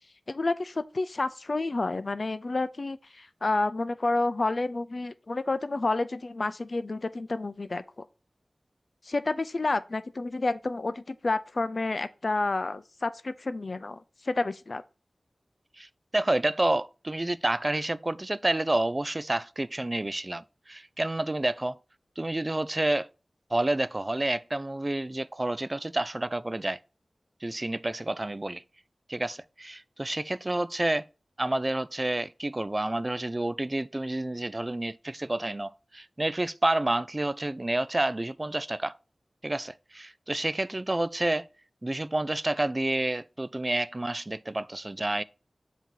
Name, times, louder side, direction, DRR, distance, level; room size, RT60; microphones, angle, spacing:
voice 1, 0.3-7.8 9.0-14.8, left 2 dB, 60° left, 0.4 m, -30 dB
voice 2, 16.1-21.8 22.2-23.1 23.5-26.8 27.4-28.6 29.1-31.0 31.4-39.0 39.4-41.5 41.8-45.2, right 1 dB, 30° right, 0.3 m, -29 dB
7.7 x 2.8 x 4.5 m
wide cardioid pair, 65°, 0 cm